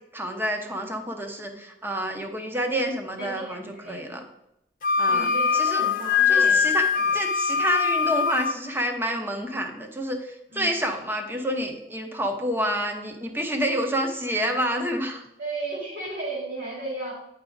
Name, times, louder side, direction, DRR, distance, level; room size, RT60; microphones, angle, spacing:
voice 1, 0.1-4.2 5.0-5.3 5.5-5.8 6.3-6.8 7.1-15.2, equal, 10° right, 4 dB, 0.8 m, -28 dB
voice 2, 3.2-4.0 5.1-6.7 7.1-7.2 10.5-11.0 15.4-17.1, right 2 dB, 50° right, -5 dB, 1.7 m, -34 dB
Wind instrument woodwind instrument, 4.8-8.6, left 6 dB, 50° left, 0.9 m, -22 dB
9.3 x 4.7 x 3.9 m, 0.83 s
head